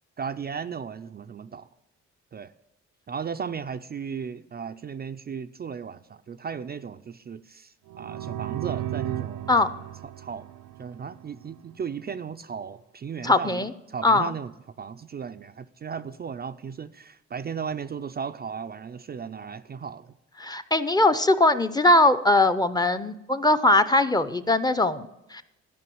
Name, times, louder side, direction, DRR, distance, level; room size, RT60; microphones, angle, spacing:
voice 1, 0.2-1.7 2.3-2.5 3.1-9.5 10.0-10.5 10.8-14.5 14.8-20.1, right 6 dB, 35° right, 0.5 m, -36 dB
sound 1, 7.9-11.6, right 13 dB, 90° right, 0.7 m, -35 dB
voice 2, 13.2-13.7 14.0-14.3 20.4-25.4, left 2 dB, 15° left, 0.7 m, -21 dB
13.0 x 5.2 x 7.8 m
cardioid pair, 90°, 30 cm